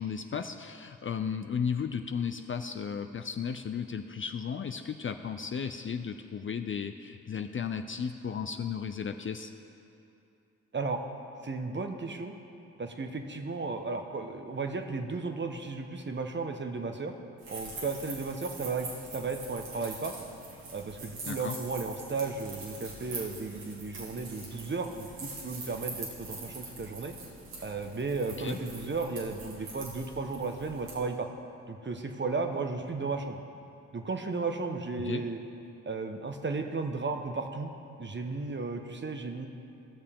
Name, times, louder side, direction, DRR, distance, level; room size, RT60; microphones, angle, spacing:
voice 1, 0.0-9.5 21.3-21.6 28.4-28.6 35.1-35.2, left 6 dB, 35° left, 7 dB, 0.5 m, -34 dB
voice 2, 11.4-12.3 12.8-17.1 17.5-18.9 19.1-20.1 20.7-27.1 27.6-31.3 31.7-33.4 33.9-35.4 35.8-37.7 38.0-39.5, right 4 dB, 30° right, 5 dB, 1.0 m, -34 dB
sound 1, 17.4-30.9, right 3 dB, 75° right, 2.3 m, -44 dB
16.5 x 6.5 x 3.7 m, 2.7 s
hypercardioid pair, 45°, 36 cm